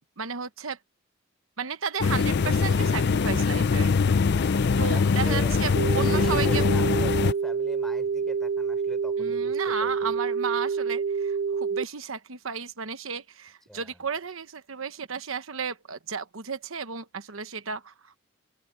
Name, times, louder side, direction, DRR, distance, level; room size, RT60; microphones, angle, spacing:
voice 1, 0.2-0.8 1.6-3.9 4.8-6.6 9.2-18.2, right 6 dB, 80° right, 1.1 m, -33 dB
sound 1, 2.0-7.3, left 5 dB, 55° left, 0.5 m, -23 dB
voice 2, 4.4-5.6 5.9-10.2 13.7-14.0, equal, ahead, 4.1 m, -41 dB
sound 2, 5.8-11.8, right 5 dB, 40° right, 0.3 m, -27 dB
open air
head